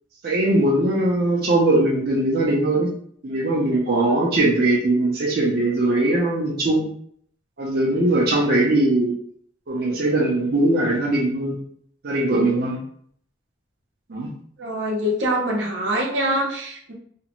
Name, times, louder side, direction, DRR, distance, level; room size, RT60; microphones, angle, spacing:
voice 1, 0.2-2.9 3.2-6.9 7.6-9.1 9.7-11.6 12.0-12.8 14.1-14.3, right 2 dB, 55° right, -3 dB, 0.5 m, -20 dB
voice 2, 14.6-16.9, equal, 90° right, -2 dB, 0.7 m, -24 dB
2.5 x 2.0 x 2.9 m, 0.62 s
head